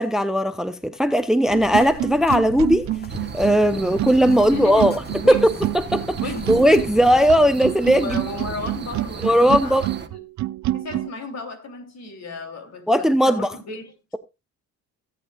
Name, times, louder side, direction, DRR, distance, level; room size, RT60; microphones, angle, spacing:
voice 1, 0.0-2.9 3.3-5.0 5.3-5.4 5.7-6.2 6.5-8.2 9.2-9.8 12.9-13.5, equal, ahead, 0.7 m, -18 dB
sound 1, 1.5-7.3, left 6 dB, 35° left, 1.1 m, -41 dB
sound 2, 1.5-11.1, right 15 dB, 70° right, 0.5 m, -28 dB
sound 3, 3.1-10.1, right 6 dB, 35° right, 1.0 m, -36 dB
voice 2, 4.4-5.6 6.2-6.6 7.9-10.2 10.7-13.9, left 3 dB, 60° left, 3.0 m, -34 dB
16.5 x 8.3 x 2.4 m
cardioid pair, 90°, 30 cm